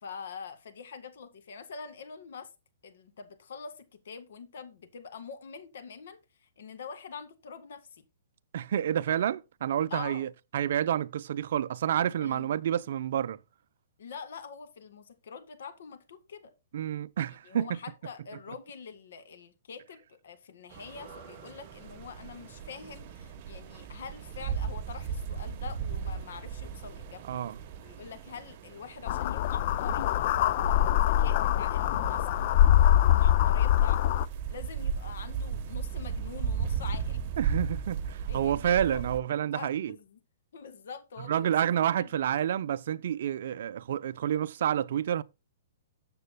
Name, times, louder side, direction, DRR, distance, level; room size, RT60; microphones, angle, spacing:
voice 1, 0.0-2.5 2.8-6.2 6.6-8.0 9.9-10.3 12.2-12.5 14.0-16.5 17.4-27.4 27.8-30.1 30.4-34.1 34.5-37.2 38.3-39.0 39.5-40.2 40.5-41.5 42.0-42.2, left 6 dB, 70° left, 1.9 m, -45 dB
voice 2, 8.5-13.4 16.7-17.8 27.3-27.6 37.4-39.9 41.2-45.2, right 10 dB, 65° right, 0.5 m, -29 dB
sound 1, 20.7-25.0 25.3-25.4, right 4 dB, 20° right, 6.5 m, -56 dB
sound 2, 20.7-39.2, right 7 dB, 40° right, 1.1 m, -37 dB
sound 3, 29.1-34.3, left 11 dB, 45° left, 0.4 m, -23 dB
13.5 x 7.5 x 2.2 m
hypercardioid pair, 145°, 0 cm